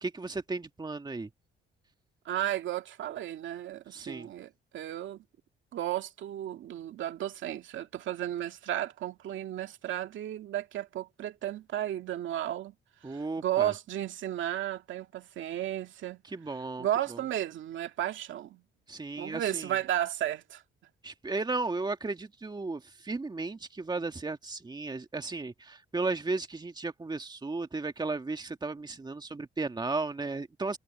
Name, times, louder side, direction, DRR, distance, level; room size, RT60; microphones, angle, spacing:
voice 1, 0.0-1.3 3.9-4.3 13.0-13.7 16.3-17.2 18.9-19.7 21.0-30.8, right 3 dB, 20° right, 2.0 m, -35 dB
voice 2, 2.3-5.2 5.7-12.7 13.1-16.2 16.8-18.6 19.2-20.6, right 12 dB, 75° right, 2.2 m, -34 dB
cardioid pair, 90°, 20 cm